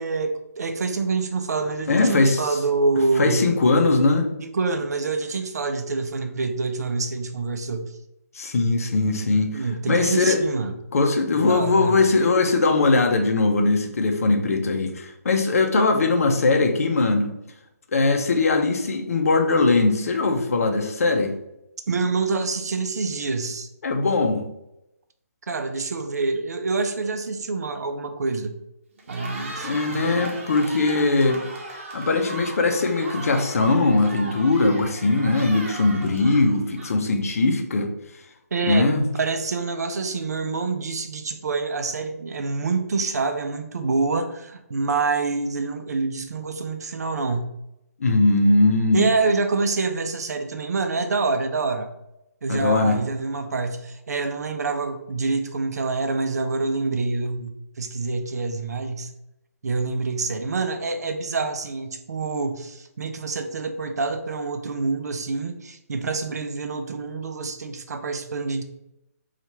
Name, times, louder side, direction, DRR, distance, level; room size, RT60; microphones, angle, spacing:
voice 1, 0.0-3.5 4.4-7.9 9.5-10.7 11.4-12.0 21.9-23.7 25.5-28.5 29.1-30.2 38.5-47.5 48.9-51.9 52.4-57.5 57.8-59.1 59.6-68.6, right 3 dB, 75° right, 7 dB, 0.5 m, -26 dB
voice 2, 1.9-2.5 3.2-4.3 8.4-10.4 10.9-17.3 17.9-21.3 23.8-24.4 29.6-31.4 31.9-37.9 38.6-39.0 48.0-49.0 52.5-53.0, left 3 dB, 60° left, 4 dB, 0.7 m, -20 dB
Cheering, 28.9-37.2, right 2 dB, 45° right, 0.9 m, -37 dB
2.9 x 2.5 x 4.2 m, 0.87 s
hypercardioid pair, 160°, 9 cm